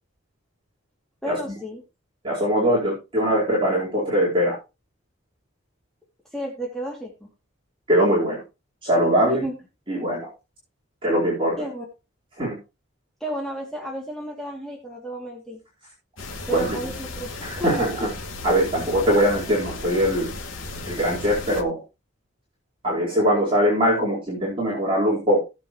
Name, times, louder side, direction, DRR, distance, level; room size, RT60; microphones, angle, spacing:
voice 1, 1.2-1.8 6.3-7.3 9.3-9.5 11.6-11.9 13.2-15.6 16.5-17.9, right 1 dB, ahead, -3 dB, 2.7 m, -32 dB
voice 2, 2.2-4.5 7.9-8.4 8.8-9.4 9.9-10.3 11.0-11.6 12.4-12.6 16.5-16.7 17.4-18.1 18.4-20.3 20.9-21.8 22.8-25.4, equal, 25° right, -6 dB, 4.4 m, -21 dB
sound 1, 16.2-21.6, left 2 dB, 75° left, 2.6 m, -35 dB
18.5 x 7.3 x 3.1 m, 0.28 s
head